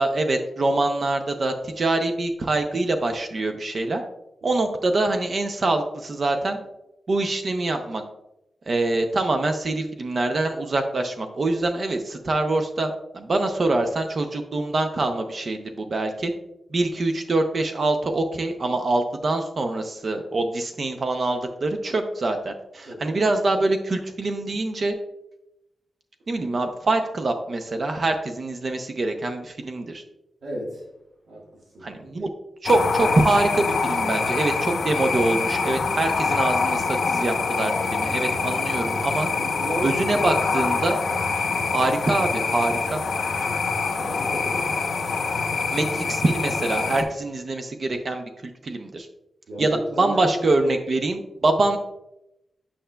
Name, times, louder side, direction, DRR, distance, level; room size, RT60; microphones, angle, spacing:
voice 1, 0.0-4.0 4.4-6.6 7.1-8.0 8.7-16.3 16.7-25.0 26.3-30.0 31.8-32.3 32.6-39.3 39.8-41.0 41.3-43.0 45.7-49.1 49.6-51.8, right 2 dB, 45° right, 6 dB, 0.5 m, -24 dB
voice 2, 22.8-23.2 30.4-30.9 31.3-32.1 39.3-40.4 44.0-44.7 49.5-50.4, right 1 dB, 85° right, -4 dB, 1.4 m, -35 dB
sound 1, 32.7-47.0, left 4 dB, 80° left, 0.7 m, -25 dB
8.7 x 5.6 x 2.2 m, 0.87 s
wide cardioid pair, 160°, 0 cm